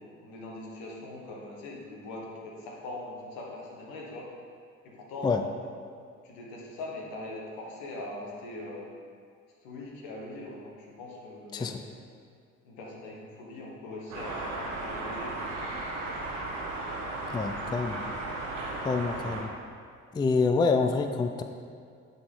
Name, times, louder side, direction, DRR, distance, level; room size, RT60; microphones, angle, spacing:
voice 1, 0.0-4.3 4.8-5.7 6.2-8.9 9.6-11.8 12.6-15.5, left 2 dB, 75° left, -2 dB, 1.4 m, -41 dB
sound 1, 14.1-19.4, right 2 dB, 85° right, 1.2 m, -35 dB
voice 2, 17.3-18.0 18.8-19.5 20.1-21.4, left 4 dB, 10° left, 7 dB, 0.4 m, -27 dB
9.4 x 4.1 x 3.8 m, 2.2 s
hypercardioid pair, 55°, 37 cm